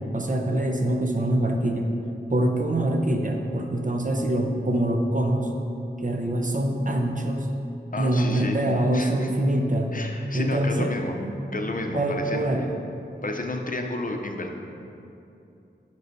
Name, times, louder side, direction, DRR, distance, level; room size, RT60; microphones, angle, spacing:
voice 1, 0.1-1.9 2.3-5.5 6.0-7.5 8.0-10.0 10.3-10.9 11.2-11.4 11.9-12.7, right 1 dB, 45° right, 2 dB, 0.7 m, -24 dB
voice 2, 7.9-8.6 8.9-9.3 9.9-11.2 11.5-12.7 13.2-14.6, left 2 dB, 45° left, 3 dB, 0.6 m, -31 dB
9.3 x 5.4 x 2.7 m, 2.7 s
wide cardioid pair, 50°, 19 cm